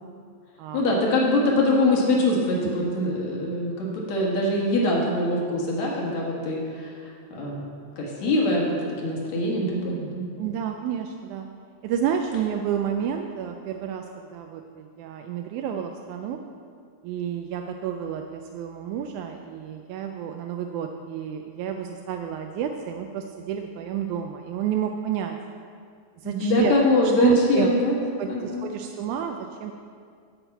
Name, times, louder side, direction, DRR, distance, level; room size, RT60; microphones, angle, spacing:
voice 1, 0.7-6.9 7.3-7.6 8.0-10.2 26.2-28.0 28.3-28.7, left 1 dB, 70° left, -3 dB, 2.8 m, -23 dB
voice 2, 10.4-11.5 11.8-14.1 14.3-16.4 17.0-25.4 26.2-26.8 27.2-27.8 28.2-28.3 28.6-29.7, right 9 dB, 90° right, 4 dB, 2.0 m, -29 dB
8.0 x 5.9 x 7.9 m, 2.1 s
omnidirectional pair, 3.4 m